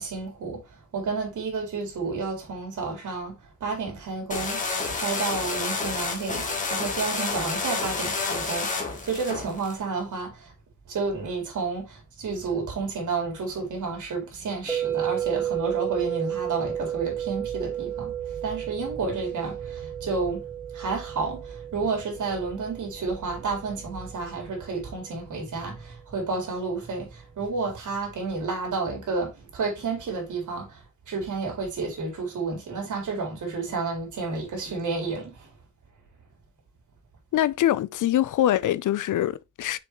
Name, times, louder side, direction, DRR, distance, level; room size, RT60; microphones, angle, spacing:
voice 1, 0.0-4.6 4.9-10.5 10.9-35.5, right 4 dB, 90° right, 3.9 m, -31 dB
sound 1, 4.3-9.8, left 4 dB, 25° left, 1.7 m, -29 dB
sound 2, 14.7-24.8, right 11 dB, 5° right, 0.9 m, -33 dB
voice 2, 37.3-39.8, left 12 dB, 90° left, 0.5 m, -24 dB
6.9 x 5.7 x 3.0 m
wide cardioid pair, 170°, 30 cm